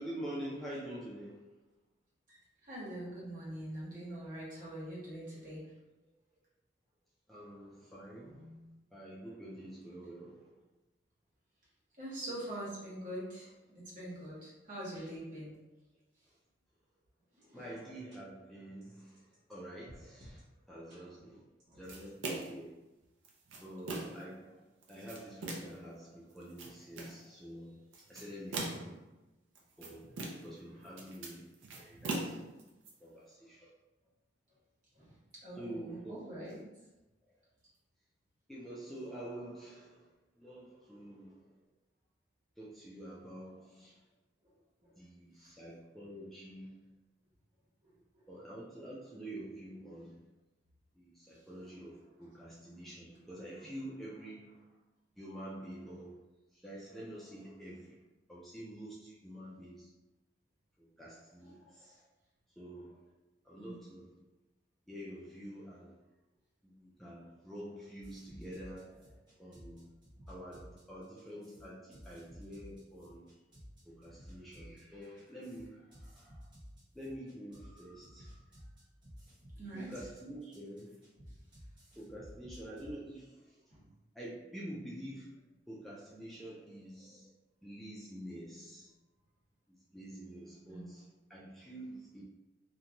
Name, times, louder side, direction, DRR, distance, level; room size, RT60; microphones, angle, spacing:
voice 1, 0.0-1.5 7.3-8.5 8.9-10.6 13.9-14.0 17.5-21.4 21.8-22.8 23.6-29.1 29.8-32.4 33.0-33.7 35.6-36.2 37.3-37.4 38.5-41.6 42.6-44.0 44.9-46.9 48.3-50.3 50.9-54.8 55.2-56.3 56.5-58.0 58.3-60.0 60.8-62.1 62.6-63.1 63.4-64.2 64.9-66.0 66.6-69.9 70.3-73.3 73.8-76.5 76.9-78.4 79.7-81.0 82.0-83.6 84.1-87.3 87.6-88.9 89.7-92.2, right 1 dB, ahead, -7 dB, 0.3 m, -47 dB
voice 2, 2.6-5.7 8.2-8.7 12.0-15.5 17.3-17.7 21.7-21.9 34.9-35.1 35.4-36.6 44.8-44.9 45.4-45.5 53.6-53.7 63.6-63.8 79.6-79.9 83.7-83.8 90.7-90.9, right 1 dB, 45° right, -7 dB, 1.1 m, -44 dB
sound 1, 17.4-17.5 17.8-17.9 18.1-18.2 18.8-19.6 19.9-20.4 20.9-21.0 21.6-22.1, equal, 65° right, 0.9 m, -56 dB
sound 2, 21.9-22.6 23.2-24.3 24.8-25.8 26.4-27.2 27.9-29.0 29.6-30.6 30.9-32.9, right 2 dB, 85° right, 0.5 m, -41 dB
sound 3, 68.0-82.9, equal, 25° right, 1.1 m, -54 dB
2.5 x 2.1 x 2.8 m, 1.0 s
head